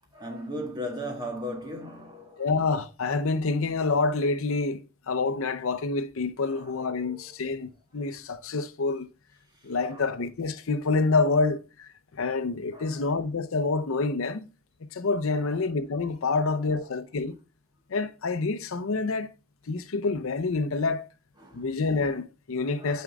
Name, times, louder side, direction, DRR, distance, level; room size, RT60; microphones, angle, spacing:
voice 1, 0.1-2.5 6.4-7.3 9.8-10.0 12.7-13.1 16.3-16.8 21.4-21.7 22.7-23.0, equal, 20° right, 1.6 m, -38 dB
voice 2, 2.4-9.1 9.6-14.5 14.9-17.3 17.9-19.3 19.7-21.1 21.5-23.0, left 3 dB, 70° left, 0.6 m, -27 dB
9.2 x 5.1 x 2.3 m
head